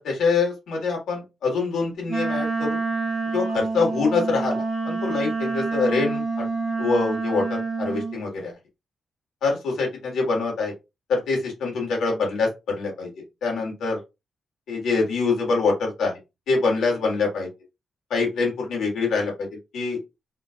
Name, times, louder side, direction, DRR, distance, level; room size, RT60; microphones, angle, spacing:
voice 1, 0.0-2.8 3.3-6.4 6.8-8.5 9.4-9.5 9.8-10.7 11.1-13.1 13.4-14.0 14.7-16.1 16.5-17.5 18.1-19.5 19.7-20.0, left 4 dB, 80° left, -1 dB, 1.7 m, -24 dB
Wind instrument woodwind instrument, 2.1-8.2, right 3 dB, 30° right, 1.0 m, -27 dB
3.7 x 2.4 x 2.5 m, 0.24 s
wide cardioid pair, 165°, 0 cm